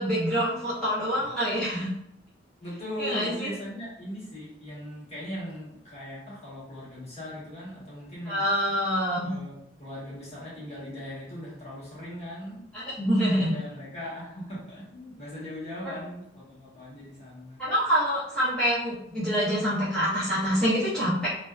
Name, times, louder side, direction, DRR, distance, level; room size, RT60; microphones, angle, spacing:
voice 1, 0.0-1.9 3.0-3.5 8.3-9.3 12.7-13.5 17.6-21.3, equal, 5° left, -12 dB, 0.6 m, -26 dB
voice 2, 2.6-8.4 9.2-12.7 13.2-17.6, left 1 dB, 35° left, -8 dB, 1.1 m, -39 dB
2.6 x 2.2 x 2.3 m, 0.78 s
head